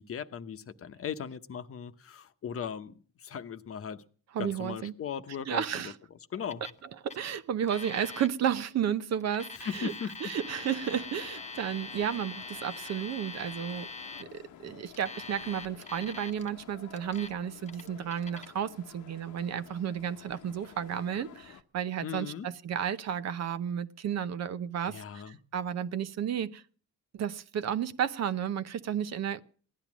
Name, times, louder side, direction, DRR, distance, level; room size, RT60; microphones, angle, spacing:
voice 1, 0.0-4.0 4.4-6.6 9.5-10.2 22.0-22.5 24.9-25.4, left 7 dB, 50° left, 0.9 m, -38 dB
voice 2, 4.3-4.9 5.5-5.9 7.0-9.9 10.2-13.9 14.2-26.6 27.1-29.4, right 9 dB, 60° right, 0.8 m, -32 dB
Alarm, 6.5-6.8 7.1-7.2 7.7-8.3 9.2-14.2 14.9-16.5 16.9-17.3 17.7-18.5, left 3 dB, 25° left, 0.7 m, -43 dB
sound 1, 10.4-21.6, left 10 dB, 75° left, 1.0 m, -52 dB
16.0 x 10.5 x 6.1 m
cardioid pair, 90°, 30 cm